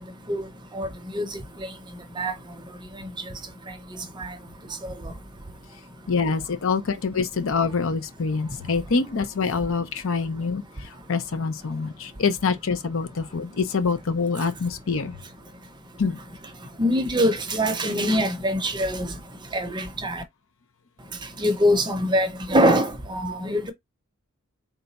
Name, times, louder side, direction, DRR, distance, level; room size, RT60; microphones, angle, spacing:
voice 1, 6.1-15.2 16.0-16.2, left 4 dB, 60° left, 0.6 m, -25 dB
voice 2, 16.8-19.1 19.5-20.2 21.4-23.7, equal, 20° right, 0.6 m, -23 dB
4.0 x 2.3 x 4.0 m
head